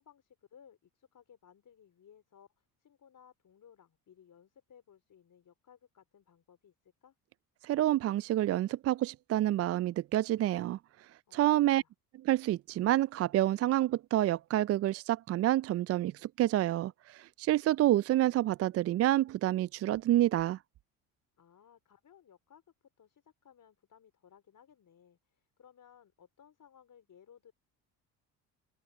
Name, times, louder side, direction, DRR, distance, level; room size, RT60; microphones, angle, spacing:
voice 1, 0.0-7.2 11.3-11.4 11.8-11.9 21.4-22.6 23.0-27.5, left 8 dB, 45° left, 4.1 m, -60 dB
voice 2, 7.6-10.8 11.3-11.8 12.2-20.6, right 14 dB, 35° right, 0.4 m, -28 dB
open air
hypercardioid pair, 70°, 44 cm